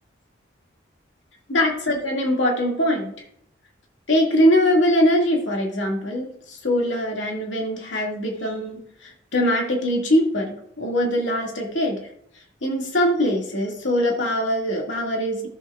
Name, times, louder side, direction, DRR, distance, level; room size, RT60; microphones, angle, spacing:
voice 1, 1.5-3.1 4.1-12.0 12.6-15.5, equal, 75° left, 0 dB, 2.2 m, -22 dB
14.0 x 7.2 x 2.4 m, 0.67 s
head